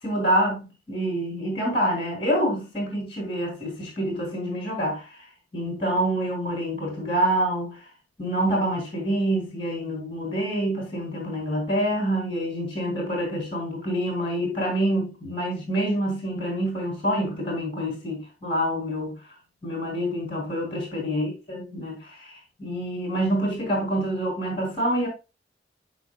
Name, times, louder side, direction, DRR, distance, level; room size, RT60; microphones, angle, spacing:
voice 1, 0.0-5.2 5.5-7.8 8.2-19.2 19.6-25.1, right 1 dB, 30° left, 3.8 m, -27 dB
13.5 x 4.6 x 2.4 m
head